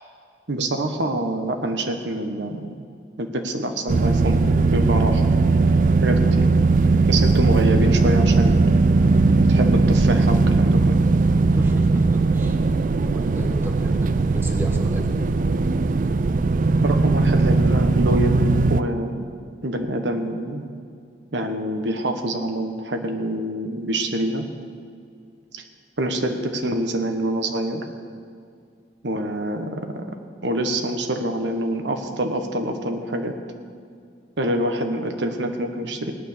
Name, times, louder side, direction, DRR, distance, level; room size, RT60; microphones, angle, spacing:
voice 1, 0.5-2.7 3.2-5.2 6.0-6.5 7.1-8.6 9.4-11.0 16.8-18.4 18.7-19.3 19.6-20.6 21.3-24.4 25.5-25.6 26.0-27.8 29.0-30.0 30.4-33.3 34.4-36.1, right 1 dB, 80° right, 5 dB, 1.2 m, -26 dB
sound 1, 3.9-18.8, right 3 dB, 45° right, 0.4 m, -18 dB
voice 2, 11.5-12.6 13.0-15.1, equal, 15° right, 2 dB, 1.4 m, -33 dB
18.0 x 9.4 x 6.6 m, 2.2 s
head